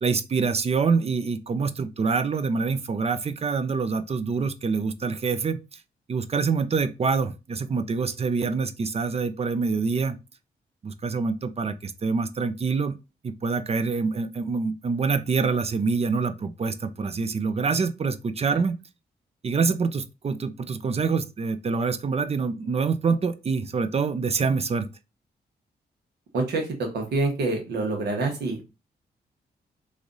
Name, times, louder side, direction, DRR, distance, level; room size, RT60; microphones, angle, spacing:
voice 1, 0.0-5.8 6.1-10.2 10.8-13.0 13.2-18.8 19.4-24.9, right 5 dB, 40° right, 0.5 m, -26 dB
voice 2, 26.3-26.7 26.9-28.6, right 3 dB, 80° right, 1.2 m, -26 dB
3.2 x 2.5 x 3.9 m
cardioid pair, 65°, 17 cm